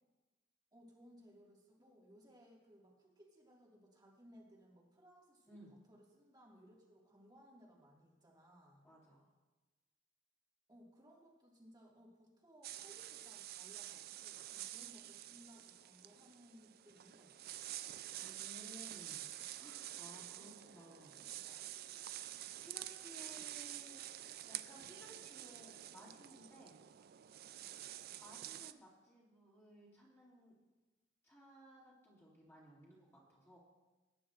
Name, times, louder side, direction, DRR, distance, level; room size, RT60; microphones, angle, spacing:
voice 1, 0.7-8.8 10.7-17.6 20.4-21.7, equal, 20° right, -3 dB, 2.0 m, -63 dB
voice 2, 8.8-9.3 18.2-19.2 19.6-21.2 22.1-26.8 28.2-30.6 31.2-33.6, equal, 15° left, -7 dB, 2.6 m, -59 dB
sound 1, 12.6-28.7, right 13 dB, 50° right, 0.4 m, -49 dB
18.5 x 9.8 x 2.5 m, 1.2 s
head